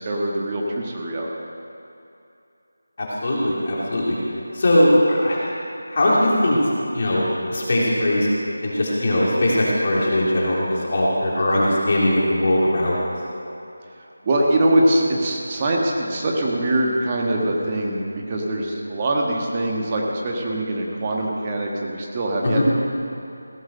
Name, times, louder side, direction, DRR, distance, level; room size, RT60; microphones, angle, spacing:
voice 1, 0.0-1.4 14.2-22.6, right 1 dB, 25° right, -1 dB, 1.4 m, -23 dB
voice 2, 3.0-4.2 4.5-5.5 5.9-6.6 6.9-7.2 7.5-8.3 8.6-13.0 22.4-22.6, left 1 dB, 45° left, -5 dB, 3.3 m, -20 dB
16.5 x 7.9 x 6.7 m, 2.7 s
figure-of-eight pair, 170°, 0 cm